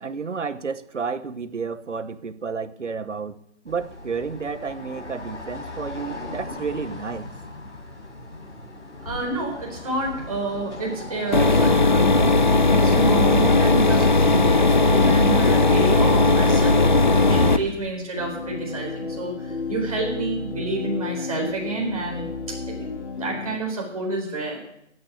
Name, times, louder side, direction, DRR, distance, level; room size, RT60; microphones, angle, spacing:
voice 1, 0.0-3.3 3.6-7.3, right 5 dB, 90° right, 15 dB, 1.1 m, -31 dB
sound 1, 3.7-18.0, left 2 dB, 85° left, 4.3 m, -37 dB
voice 2, 9.0-12.4 12.7-16.8 17.1-24.6, right 3 dB, 30° right, -1 dB, 4.0 m, -29 dB
sound 2, 11.3-17.6, left 3 dB, 40° left, 0.7 m, -17 dB
sound 3, 18.2-23.6, left 4 dB, 70° left, 2.6 m, -33 dB
12.5 x 8.9 x 8.4 m, 0.77 s
figure-of-eight pair, 175°, 36 cm